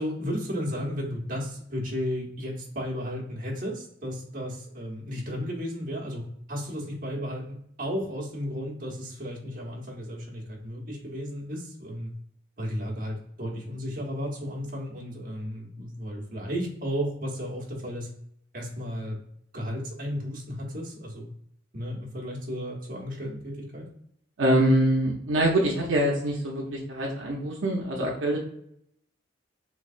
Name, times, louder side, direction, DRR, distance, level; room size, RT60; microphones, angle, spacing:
voice 1, 0.0-6.2 6.5-12.1 12.6-18.1 18.5-19.2 19.5-21.3 21.7-23.9, equal, 45° right, -2 dB, 0.9 m, -34 dB
voice 2, 24.4-28.4, right 1 dB, 75° right, -2 dB, 0.6 m, -24 dB
3.5 x 3.1 x 2.4 m, 0.71 s
head